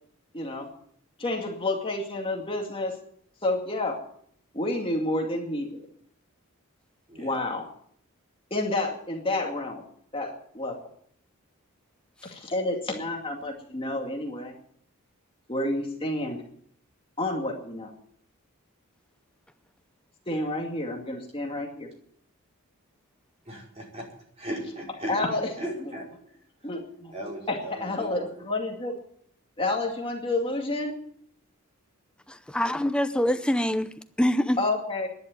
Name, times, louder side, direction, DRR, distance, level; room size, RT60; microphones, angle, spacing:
voice 1, 0.3-0.7 1.2-3.0 3.4-4.0 4.5-5.8 7.2-7.6 8.5-9.8 10.1-10.7 12.2-14.5 15.5-16.4 17.2-17.9 20.3-21.9 25.1-25.4 25.9-26.0 26.6-27.1 27.5-28.9 29.6-30.9 34.6-35.1, left 2 dB, 25° left, 2.3 m, -29 dB
voice 2, 23.4-24.1 24.4-25.1 25.6-26.1 27.1-28.3, equal, 30° right, 5.1 m, -37 dB
voice 3, 32.3-34.6, left 1 dB, 5° left, 0.6 m, -25 dB
11.0 x 11.0 x 9.1 m
head